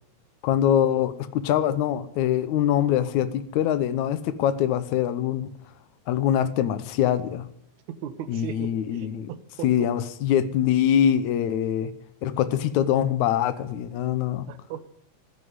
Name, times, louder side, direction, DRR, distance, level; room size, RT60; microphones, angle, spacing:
voice 1, 0.4-5.5 6.1-7.5 8.3-9.3 9.6-11.9 12.2-14.5, left 10 dB, 75° left, 2.3 m, -23 dB
voice 2, 7.9-9.9 14.5-14.9, right 9 dB, 80° right, 2.4 m, -37 dB
15.0 x 10.0 x 9.5 m
omnidirectional pair, 3.4 m